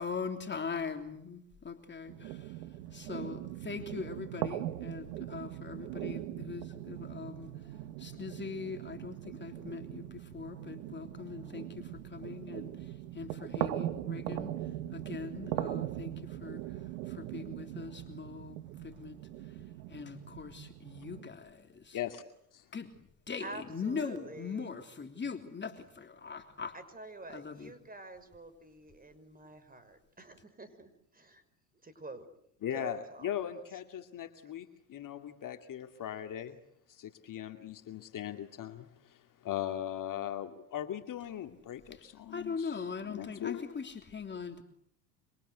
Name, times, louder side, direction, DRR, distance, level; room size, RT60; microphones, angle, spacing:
voice 1, 0.0-2.5 2.9-7.5 8.0-14.5 14.9-16.6 17.1-19.2 19.9-22.0 22.7-22.9 23.3-26.7 27.3-27.7 41.9-42.1 42.3-44.6, left 5 dB, 25° left, 5 dB, 3.3 m, -41 dB
sound 1, 2.1-21.2, right 14 dB, 75° right, 1.9 m, -40 dB
voice 2, 23.4-24.7 26.7-31.4 31.8-32.2 32.7-33.3, right 2 dB, 20° right, 13 dB, 5.9 m, -48 dB
voice 3, 32.6-36.6 36.9-43.9, left 10 dB, 45° left, 6 dB, 2.5 m, -39 dB
27.0 x 26.5 x 8.1 m, 0.71 s
hypercardioid pair, 80°, 46 cm